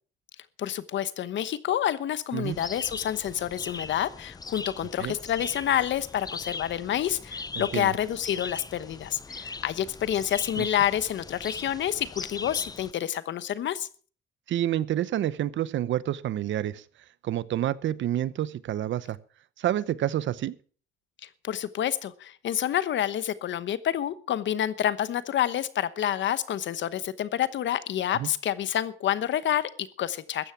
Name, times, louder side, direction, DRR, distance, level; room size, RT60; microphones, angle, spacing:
voice 1, 0.6-13.9 21.2-30.5, left 11 dB, 70° left, 15 dB, 1.1 m, -28 dB
sound 1, 2.4-12.9, left 4 dB, 20° left, 0.6 m, -40 dB
voice 2, 7.6-7.9 10.6-10.7 14.5-16.8 17.2-19.2 19.6-20.5 28.2-28.3, right 12 dB, 70° right, 18 dB, 0.8 m, -28 dB
14.5 x 10.0 x 5.9 m, 0.42 s
cardioid pair, 90°, 20 cm